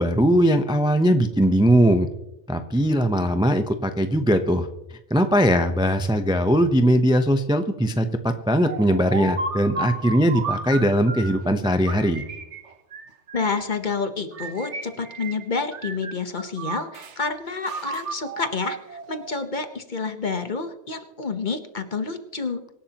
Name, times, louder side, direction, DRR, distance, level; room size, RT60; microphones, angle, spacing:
voice 1, 0.0-2.1 2.5-4.7 5.1-12.2, equal, 5° right, 7 dB, 0.6 m, -20 dB
sound 1, 8.7-11.4 11.9-13.7 14.3-15.4 15.7-17.2 17.7-19.4, right 3 dB, 70° right, 1.4 m, -33 dB
voice 2, 13.3-22.6, left 4 dB, 40° left, 8 dB, 1.1 m, -29 dB
24.5 x 11.5 x 2.9 m, 0.94 s
omnidirectional pair, 1.2 m